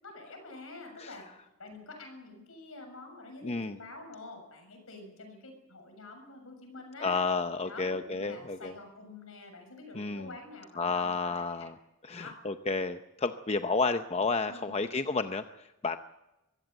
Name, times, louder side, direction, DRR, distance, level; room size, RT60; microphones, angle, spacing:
voice 1, 0.0-1.3 1.6-7.2 7.6-11.7 12.1-12.4 14.5-14.8, left 2 dB, 70° left, 5 dB, 7.0 m, -47 dB
voice 2, 3.4-3.8 7.0-8.7 10.0-10.3 10.8-11.7 12.1-15.4 15.8-16.0, left 4 dB, 30° left, 8 dB, 0.7 m, -31 dB
23.5 x 16.0 x 8.0 m, 0.96 s
head